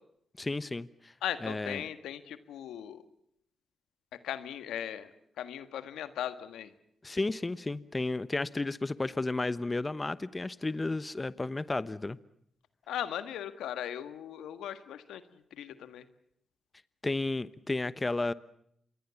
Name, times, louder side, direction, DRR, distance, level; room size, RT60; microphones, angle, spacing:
voice 1, 0.4-1.1 1.4-1.8 7.0-12.2 17.0-18.3, left 2 dB, 30° left, 16 dB, 1.0 m, -32 dB
voice 2, 1.2-3.0 4.2-5.1 5.4-6.7 12.9-15.2 15.6-16.0, left 10 dB, 85° left, 11 dB, 1.6 m, -38 dB
27.5 x 22.5 x 7.1 m, 0.72 s
supercardioid pair, 50°, 0 cm